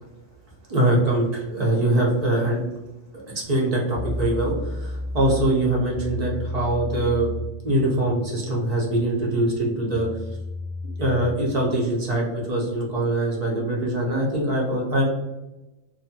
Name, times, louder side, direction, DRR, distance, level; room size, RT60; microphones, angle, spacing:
voice 1, 0.7-2.6 3.3-7.3 7.6-10.1 11.0-15.0, right 1 dB, 35° right, -4 dB, 0.7 m, -23 dB
sound 1, 3.9-11.4, left 2 dB, 30° left, 0.6 m, -33 dB
2.7 x 2.6 x 2.7 m, 1.0 s
omnidirectional pair, 1.4 m